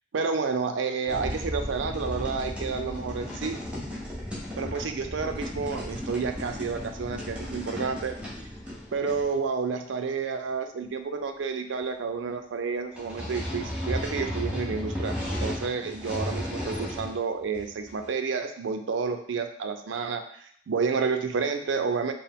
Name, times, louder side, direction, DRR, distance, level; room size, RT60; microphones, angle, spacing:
voice 1, 0.1-3.6 4.6-8.5 8.9-22.1, right 5 dB, 75° right, 7 dB, 0.4 m, -30 dB
sound 1, 1.1-9.3 13.0-17.2 17.5-18.1, equal, 5° right, 0.8 m, -34 dB
4.3 x 2.0 x 3.5 m, 0.62 s
head